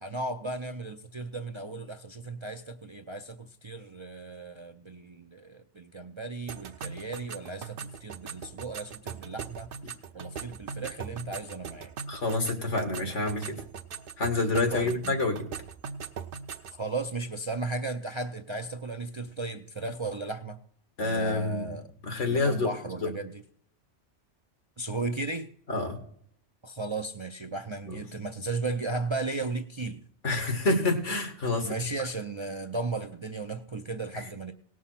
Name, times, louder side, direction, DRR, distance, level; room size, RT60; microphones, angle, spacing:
voice 1, 0.0-9.7 10.1-11.9 14.7-15.2 16.7-20.6 21.0-21.9 22.3-23.4 24.8-25.5 26.6-30.0 31.6-34.5, right 3 dB, 35° right, 5 dB, 0.5 m, -35 dB
sound 1, 6.5-16.8, right 6 dB, 55° right, 0.8 m, -41 dB
voice 2, 12.1-13.6 14.2-15.4 21.0-21.7 22.0-22.7 23.0-23.1 25.7-26.0 30.2-31.7 34.1-34.2, left 2 dB, 80° left, 4 dB, 2.3 m, -27 dB
18.0 x 6.2 x 5.7 m, 0.64 s
omnidirectional pair, 1.2 m